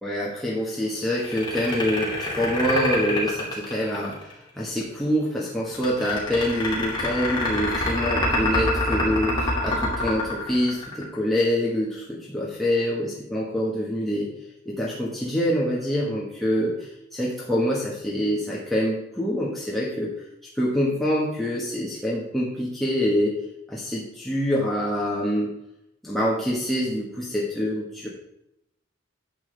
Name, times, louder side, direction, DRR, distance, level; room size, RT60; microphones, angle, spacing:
voice 1, 0.0-14.3 14.6-20.1 20.6-23.4 23.7-25.5 26.0-28.1, equal, ahead, -7 dB, 1.5 m, -26 dB
sound 1, 1.1-4.3 5.7-11.2, left 2 dB, 25° left, 2.5 m, -26 dB
10.5 x 7.2 x 3.4 m, 0.82 s
head